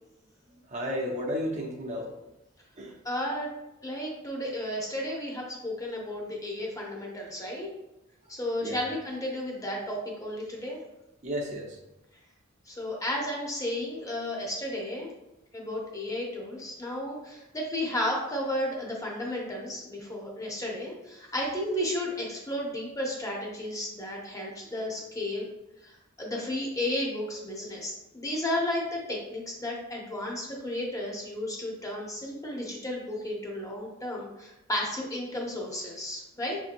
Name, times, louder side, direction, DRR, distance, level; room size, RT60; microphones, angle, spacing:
voice 1, 0.7-2.1 2.8-2.9 8.6-8.8 11.2-11.8, equal, 35° right, -1 dB, 0.6 m, -32 dB
voice 2, 3.0-3.5 3.8-7.7 8.3-10.8 12.7-15.1 15.5-25.5 25.8-25.9 26.2-36.6, left 1 dB, 15° left, -1 dB, 0.7 m, -33 dB
5.5 x 2.8 x 2.5 m, 0.92 s
head